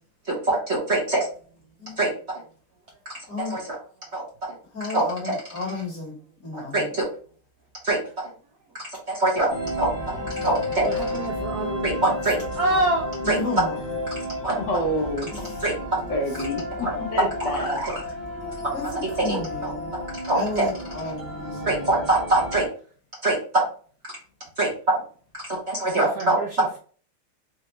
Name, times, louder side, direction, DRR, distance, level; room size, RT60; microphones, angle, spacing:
voice 1, 0.3-1.3 2.0-2.1 3.4-3.8 4.1-4.2 4.9-5.3 6.5-7.0 7.8-8.0 9.1-9.5 9.8-10.9 11.8-12.4 13.3-13.4 14.4-14.6 15.6-15.7 16.8-16.9 17.5-18.0 19.2-19.7 20.2-20.7 21.6-22.7 23.2-23.4 24.6-24.7 25.5-26.4, right 2 dB, 40° right, 1.1 m, -24 dB
voice 2, 3.3-3.6 4.7-6.2 6.4-6.9 13.2-13.8 15.3-15.6 18.7-19.9 20.3-21.9, left 3 dB, 45° left, 1.6 m, -32 dB
sound 1, 9.5-22.7, left 1 dB, 20° left, 0.6 m, -32 dB
voice 3, 10.8-12.0 12.6-13.3 25.8-26.8, right 1 dB, 70° right, 0.9 m, -27 dB
voice 4, 14.5-15.3 16.1-17.8, equal, 65° left, 1.4 m, -28 dB
4.3 x 2.5 x 2.9 m
omnidirectional pair, 2.2 m